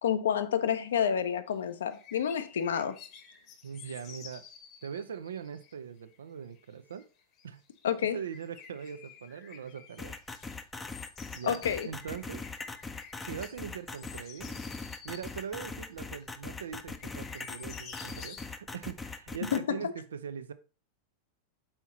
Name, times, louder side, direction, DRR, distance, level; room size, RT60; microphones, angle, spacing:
voice 1, 0.0-2.9 7.8-8.2 11.4-11.9 19.4-19.9, left 8 dB, 65° left, 0.6 m, -29 dB
sound 1, 1.9-5.7 6.1-6.2 6.5-7.5 7.8-7.9 8.1-10.6 10.9-15.4 16.2-16.3 16.7-18.5, left 7 dB, 40° left, 1.0 m, -51 dB
voice 2, 3.6-4.4 4.8-7.1 7.4-7.6 8.1-10.2 11.3-12.4 13.2-14.6 15.0-20.5, right 7 dB, 65° right, 0.5 m, -41 dB
sound 2, 10.0-19.6, left 3 dB, 15° left, 0.6 m, -41 dB
5.7 x 4.6 x 4.1 m
figure-of-eight pair, 90°, 0 cm